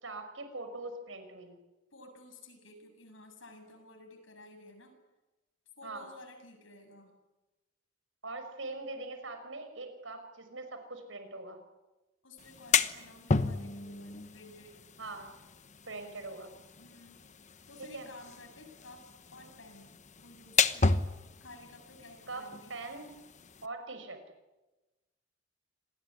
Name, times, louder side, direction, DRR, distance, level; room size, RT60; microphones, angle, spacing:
voice 1, 0.0-1.5 5.8-6.1 8.2-11.6 15.0-15.3 15.9-16.5 17.9-18.1 22.3-23.1 23.6-24.2, right 2 dB, 85° right, 8 dB, 5.7 m, -42 dB
voice 2, 1.9-5.0 5.8-7.2 12.2-14.8 16.8-17.2 17.7-21.1 21.4-22.8, left 2 dB, 85° left, 5 dB, 7.2 m, -53 dB
sound 1, 12.4-23.7, left 4 dB, 40° left, 1.1 m, -34 dB
27.5 x 20.0 x 9.8 m, 1.1 s
head